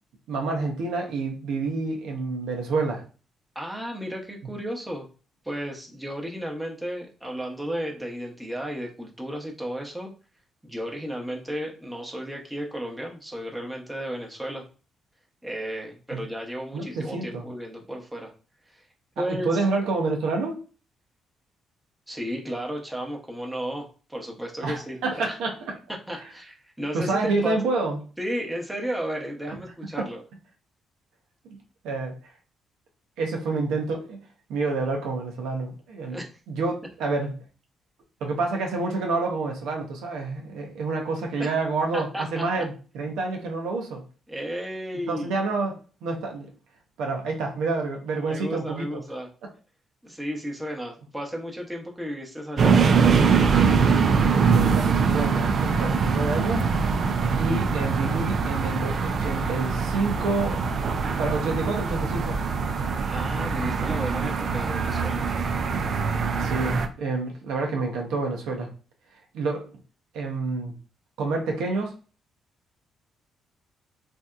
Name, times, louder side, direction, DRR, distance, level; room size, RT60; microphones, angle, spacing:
voice 1, 0.3-3.0 16.1-16.2 16.7-17.4 19.2-20.6 24.6-25.5 26.9-28.0 30.0-30.1 31.8-32.2 33.2-34.2 34.5-36.2 36.5-37.3 38.2-44.0 45.1-46.5 47.0-49.0 54.2-56.7 57.4-60.6 61.1-62.4 66.4-68.7 69.3-69.6 70.1-70.7 71.2-71.9, right 3 dB, 85° right, 1 dB, 0.7 m, -28 dB
voice 2, 3.5-5.1 5.4-10.1 10.6-14.7 15.4-18.3 18.7-18.8 19.2-19.6 22.1-25.4 25.9-27.6 28.2-30.2 36.1-36.3 41.4-41.5 41.9-42.6 44.3-45.3 48.2-49.3 50.0-52.8 63.1-65.2, equal, 5° right, 0 dB, 0.8 m, -33 dB
sound 1, 52.6-66.9, right 5 dB, 55° right, 0.4 m, -23 dB
3.3 x 2.7 x 2.4 m, 0.36 s
cardioid pair, 90°, 0 cm